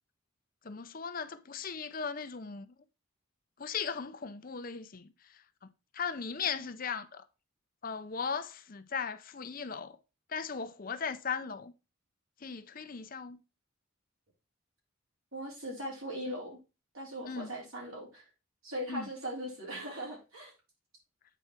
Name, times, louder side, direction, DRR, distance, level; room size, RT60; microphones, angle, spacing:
voice 1, 0.6-2.7 3.6-5.1 5.9-7.2 7.8-10.0 10.3-11.7 12.4-13.4 17.3-17.5 18.9-19.1, left 6 dB, 40° left, 0.6 m, -37 dB
voice 2, 15.3-16.6 16.9-18.2 18.6-20.5, equal, 75° right, 3.7 m, -39 dB
8.1 x 4.6 x 4.3 m
head